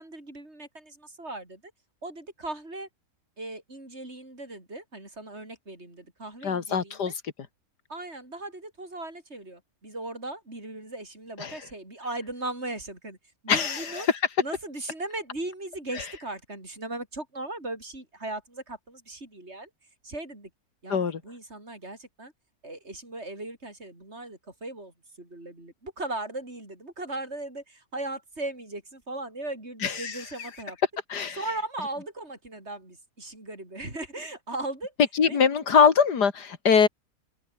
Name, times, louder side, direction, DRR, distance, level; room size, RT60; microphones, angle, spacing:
voice 1, 0.0-1.7 2.0-2.9 3.4-7.1 7.9-13.2 13.4-14.1 14.4-19.7 20.0-20.5 20.8-22.3 22.6-30.8 31.4-34.9 35.2-35.4, right 2 dB, 40° right, 7.7 m, -38 dB
voice 2, 6.4-7.1 11.4-11.6 13.5-14.2 20.9-21.2 29.8-30.5 31.1-31.4 35.2-36.9, left 6 dB, 85° left, 2.6 m, -23 dB
open air
omnidirectional pair, 1.7 m